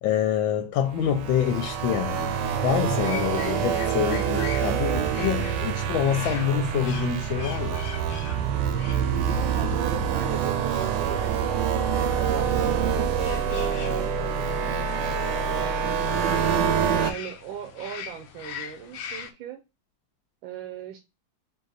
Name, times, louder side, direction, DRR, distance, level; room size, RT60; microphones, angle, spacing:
voice 1, 0.0-2.4 2.6-7.8, left 9 dB, 90° left, 1.4 m, -26 dB
sound 1, 0.9-17.1, right 7 dB, 75° right, 1.1 m, -26 dB
sound 2, 3.0-19.3, left 8 dB, 70° left, 0.8 m, -42 dB
voice 2, 9.3-11.7 12.1-13.7 15.1-16.4 16.8-19.6 20.4-21.0, right 9 dB, 90° right, 1.4 m, -38 dB
3.9 x 2.8 x 3.9 m
omnidirectional pair, 2.1 m